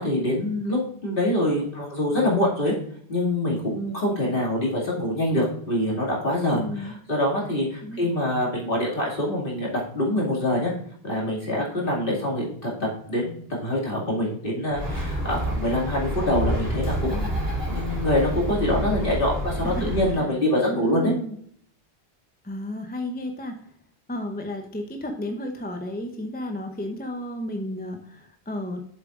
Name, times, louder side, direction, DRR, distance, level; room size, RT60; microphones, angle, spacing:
voice 1, 0.0-2.7 3.1-10.7 11.0-13.3 13.6-21.1, left 1 dB, 50° left, -4 dB, 2.6 m, -25 dB
voice 2, 6.5-7.0 7.8-8.1 19.6-20.3 20.7-21.3 22.4-23.6 24.1-28.8, left 1 dB, 10° left, 4 dB, 0.7 m, -32 dB
Bird, 14.7-20.2, equal, 60° right, 3.4 m, -28 dB
7.4 x 7.2 x 2.5 m, 0.64 s
omnidirectional pair, 1.1 m